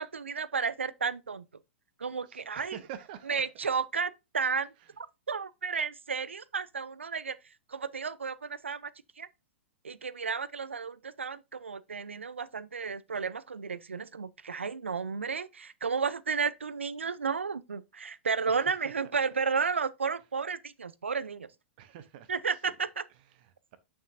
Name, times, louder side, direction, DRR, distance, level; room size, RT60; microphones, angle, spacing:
voice 1, 0.0-1.5 2.0-2.8 3.3-7.4 7.7-8.9 9.2-9.3 9.8-21.5 22.3-23.0, right 5 dB, 80° right, 0.6 m, -33 dB
voice 2, 2.3-3.5 4.8-5.0 18.5-18.9 21.8-22.8 23.1-23.8, right 10 dB, 50° right, 0.9 m, -48 dB
9.4 x 6.0 x 2.6 m
figure-of-eight pair, 100°, 6 cm